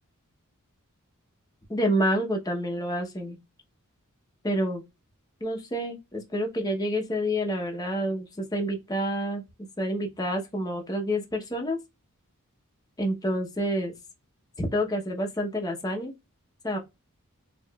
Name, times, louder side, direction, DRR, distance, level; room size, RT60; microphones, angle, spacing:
voice 1, 1.7-3.4 4.4-4.8 5.4-9.4 9.8-11.8 13.0-13.9 14.6-16.1 16.6-16.8, equal, 15° left, 0.8 m, -28 dB
4.7 x 2.4 x 2.2 m
head